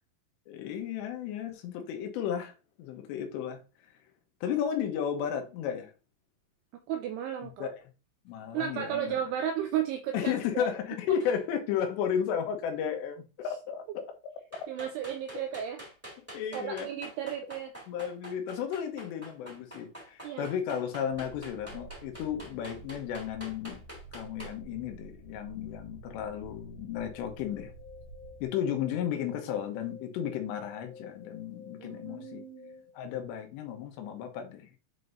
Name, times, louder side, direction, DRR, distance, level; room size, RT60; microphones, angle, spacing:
voice 1, 0.5-3.6 4.4-5.9 7.4-7.8 8.3-9.2 10.1-14.1 16.3-16.9 17.9-23.8 24.1-27.7 28.4-32.4 32.9-34.7, left 8 dB, 75° left, 3.1 m, -34 dB
voice 2, 6.9-7.7 8.5-10.7 14.7-15.8 16.5-17.7 20.2-20.5 31.8-32.8, right 9 dB, 85° right, 2.3 m, -34 dB
sound 1, 11.2-11.4 14.5-24.6, equal, 5° right, 2.2 m, -46 dB
sound 2, 21.1-28.5, right 3 dB, 60° right, 3.3 m, -50 dB
sound 3, 27.0-33.0, left 5 dB, 40° left, 1.4 m, -51 dB
7.9 x 4.6 x 2.6 m
omnidirectional pair, 5.3 m